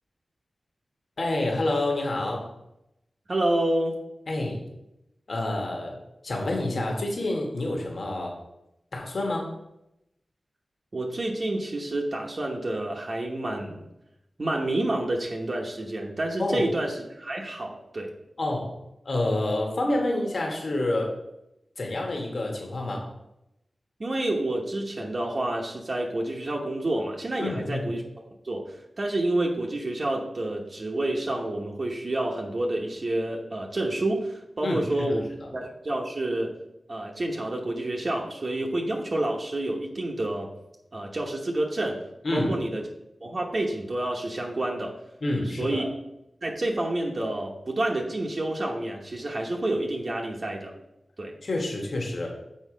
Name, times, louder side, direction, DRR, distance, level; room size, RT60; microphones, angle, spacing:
voice 1, 1.2-2.5 4.3-4.6 5.3-6.0 6.2-8.4 8.9-9.5 16.4-16.7 18.4-18.7 19.0-21.1 21.8-23.1 27.4-27.9 34.6-35.1 35.4-35.5 42.2-42.5 45.2-45.8 51.4-52.3, left 2 dB, 65° left, 0 dB, 1.5 m, -28 dB
voice 2, 3.3-3.9 10.9-13.8 14.4-18.1 24.0-28.0 28.4-35.3 35.5-36.5 36.9-40.5 40.9-42.0 42.3-42.8 43.2-44.9 45.6-45.9 46.4-50.7 51.2-51.3, right 1 dB, 50° right, -1 dB, 1.1 m, -29 dB
6.5 x 4.8 x 5.1 m, 0.87 s
wide cardioid pair, 60°, 0 cm